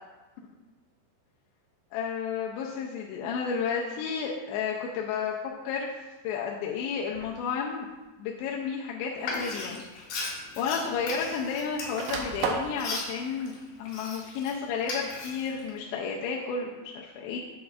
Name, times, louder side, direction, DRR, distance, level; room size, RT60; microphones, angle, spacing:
voice 1, 1.9-5.4 5.6-5.9 6.2-7.9 8.2-9.8 10.6-17.4, left 6 dB, 85° left, -2 dB, 2.8 m, -32 dB
sound 1, 7.1-7.4 8.5-8.6 10.0-10.1 10.3-11.4 11.7-12.8, right 5 dB, 80° right, 2.7 m, -33 dB
Frying (food), 9.2-14.5 14.8-15.7, left 3 dB, 70° left, 3.0 m, -37 dB
8.2 x 7.1 x 2.4 m, 1.2 s
omnidirectional pair, 5.0 m